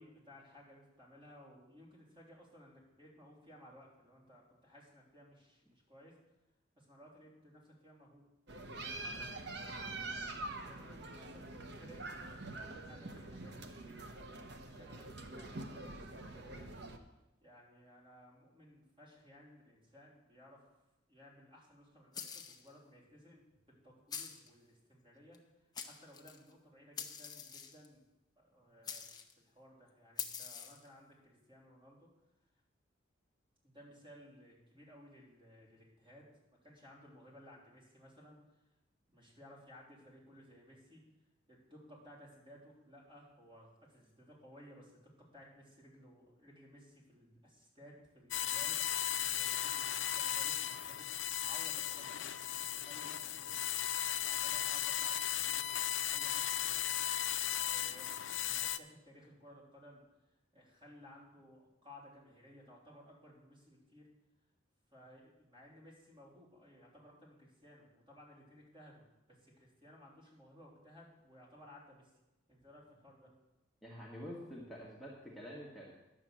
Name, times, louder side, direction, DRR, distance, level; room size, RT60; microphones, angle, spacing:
voice 1, 0.0-6.1 6.8-8.2 9.1-10.0 10.3-14.0 14.3-16.7 17.4-20.6 21.1-28.0 28.4-29.1 29.4-32.1 33.6-36.3 36.6-38.4 39.1-41.0 41.5-52.2 52.7-53.8 54.2-57.3 57.6-58.1 58.4-60.0 60.5-64.1 64.9-72.1 72.5-73.3, equal, 30° right, -4 dB, 3.5 m, -59 dB
sound 1, 8.5-17.0, right 2 dB, 65° right, 0.9 m, -45 dB
sound 2, 22.1-22.7 24.1-24.5 25.3-25.4 25.7-26.4 27.0-27.9 28.8-29.3 30.2-30.9, left 7 dB, 20° left, 0.8 m, -44 dB
sound 3, 48.3-58.8, left 11 dB, 90° left, 0.5 m, -36 dB
voice 2, 73.8-75.9, equal, ahead, -6 dB, 1.6 m, -47 dB
10.5 x 6.7 x 7.5 m, 0.97 s
head